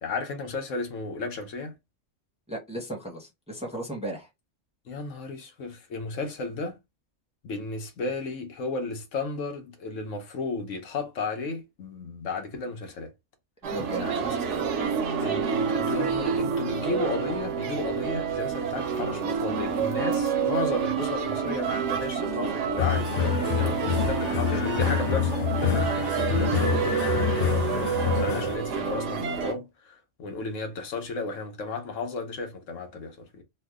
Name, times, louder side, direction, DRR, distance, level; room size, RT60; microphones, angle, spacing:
voice 1, 0.0-1.8 4.8-6.8 7.4-13.1 14.0-14.7 15.2-23.1 23.4-25.7 26.4-33.4, left 3 dB, 85° left, 1.2 m, -34 dB
voice 2, 2.5-4.3 13.7-14.0 26.2-26.5, right 1 dB, 5° right, 0.8 m, -35 dB
sound 1, 13.6-29.5, right 6 dB, 70° right, 1.0 m, -28 dB
sound 2, 22.8-28.6, left 9 dB, 60° left, 0.4 m, -27 dB
3.1 x 2.2 x 3.5 m
omnidirectional pair, 1.3 m